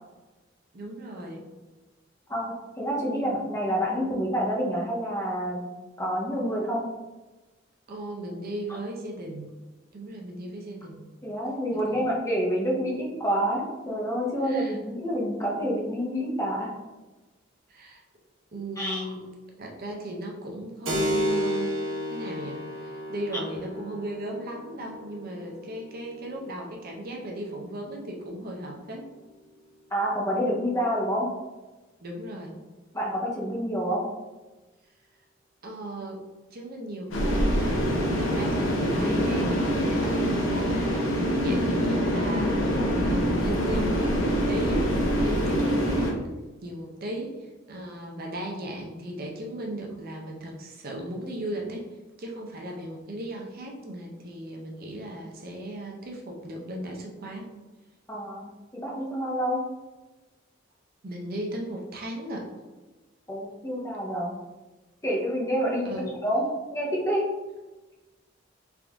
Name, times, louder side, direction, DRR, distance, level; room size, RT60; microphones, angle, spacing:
voice 1, 0.7-1.4 7.9-9.5 9.9-11.0 11.9-12.5 14.4-14.8 17.7-18.0 18.5-19.2 19.6-21.7 22.1-29.1 32.0-32.6 35.6-36.2 36.5-45.0 45.2-46.2 46.6-51.9 52.2-57.5 61.0-62.5 65.8-66.1, right 1 dB, 50° right, 0 dB, 0.6 m, -36 dB
voice 2, 2.3-5.7 6.0-6.9 11.2-16.7 18.8-19.1 23.3-23.4 29.9-31.3 32.9-34.0 58.1-59.6 63.3-64.4 65.0-67.2, equal, 15° left, -3 dB, 0.7 m, -28 dB
Keyboard (musical), 20.8-29.1, equal, 75° right, 1.1 m, -33 dB
sound 1, 37.1-46.1, equal, 80° left, 0.8 m, -25 dB
3.5 x 2.5 x 3.4 m, 1.2 s
head